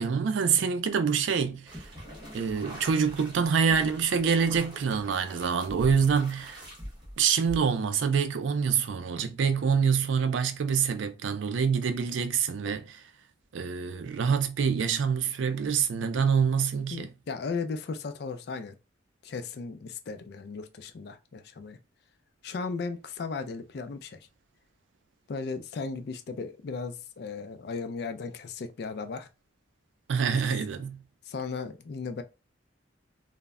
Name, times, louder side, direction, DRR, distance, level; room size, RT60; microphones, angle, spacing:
voice 1, 0.0-1.9 2.3-6.6 7.2-13.0 13.5-17.1 30.1-31.0, right 6 dB, 75° right, 0.4 m, -26 dB
sound 1, 1.7-8.0, equal, 25° right, 0.9 m, -44 dB
voice 2, 16.9-18.8 19.2-21.8 22.4-24.3 25.3-29.3 31.3-32.2, left 4 dB, 55° left, 0.3 m, -36 dB
2.1 x 2.0 x 3.5 m
head